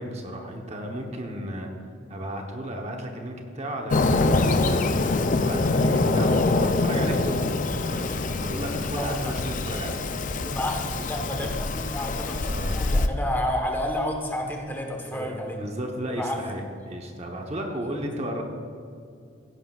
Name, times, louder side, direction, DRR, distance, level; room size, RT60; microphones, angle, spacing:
voice 1, 0.0-1.7 2.1-10.1 12.0-12.1 12.5-12.8 15.1-18.4, equal, 35° right, 2 dB, 1.0 m, -34 dB
Fireworks, 3.9-13.1, left 3 dB, 40° left, 0.5 m, -24 dB
voice 2, 8.9-9.3 10.4-15.6 16.1-16.6 17.9-18.0, left 1 dB, 10° left, 1 dB, 1.2 m, -30 dB
16.0 x 11.0 x 2.4 m, 2.4 s
head